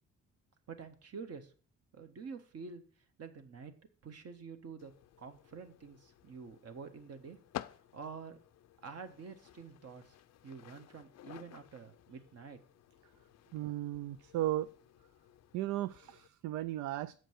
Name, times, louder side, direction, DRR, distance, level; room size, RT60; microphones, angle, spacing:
voice 1, 0.7-1.5 1.9-2.8 3.2-3.7 4.0-7.4 7.9-8.4 8.8-10.2 10.4-12.6, right 5 dB, 55° right, 7 dB, 1.5 m, -48 dB
sound 1, 4.8-16.3, left 13 dB, 60° left, 0.5 m, -53 dB
voice 2, 13.5-14.7 15.5-17.2, right 14 dB, 75° right, 13 dB, 0.4 m, -35 dB
7.8 x 5.1 x 6.3 m, 0.41 s
cardioid pair, 90°, 30 cm